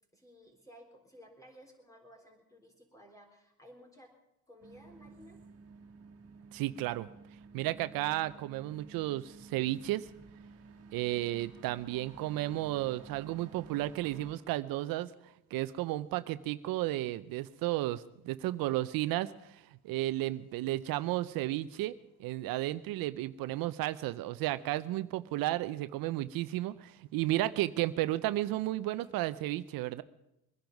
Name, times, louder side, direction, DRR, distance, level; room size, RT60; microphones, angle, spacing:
voice 1, 0.1-4.1 4.5-5.4 10.9-11.3, equal, 10° left, 2 dB, 3.8 m, -56 dB
sound 1, 4.6-14.3, right 4 dB, 45° right, 1.9 m, -53 dB
voice 2, 6.5-7.1 7.5-10.1 10.9-15.1 15.5-21.9 22.2-30.0, right 16 dB, 80° right, 14 dB, 0.6 m, -33 dB
22.5 x 10.5 x 5.2 m, 0.84 s
cardioid pair, 120°, 35 cm